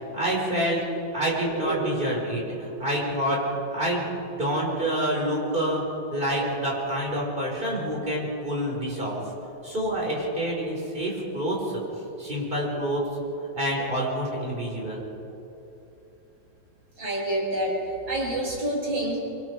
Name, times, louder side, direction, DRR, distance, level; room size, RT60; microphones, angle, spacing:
voice 1, 0.0-3.4 3.7-5.8 6.1-9.2 9.6-11.6 12.2-13.0 13.5-15.0, right 1 dB, 25° right, -3 dB, 5.4 m, -27 dB
voice 2, 1.4-2.0 17.0-17.8 18.1-19.2, right 1 dB, 85° right, -3 dB, 5.8 m, -28 dB
25.0 x 24.0 x 4.9 m, 3.0 s
omnidirectional pair, 2.1 m